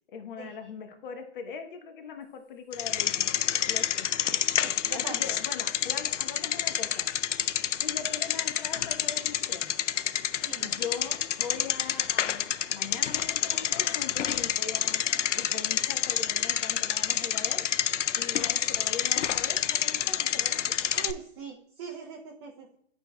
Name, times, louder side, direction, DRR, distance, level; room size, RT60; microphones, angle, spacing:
voice 1, 0.1-3.4 3.6-4.1 4.9-7.1 7.8-9.8 10.6-15.0 15.3-17.7 18.1-20.7, left 6 dB, 45° left, 6 dB, 1.0 m, -41 dB
Bicycle, 2.7-21.1, left 10 dB, 90° left, 0.5 m, -28 dB
voice 2, 4.6-5.4 10.4-10.7 20.9-22.8, right 7 dB, 25° right, -1 dB, 0.5 m, -41 dB
11.5 x 4.6 x 2.2 m, 0.71 s
hypercardioid pair, 145°, 35 cm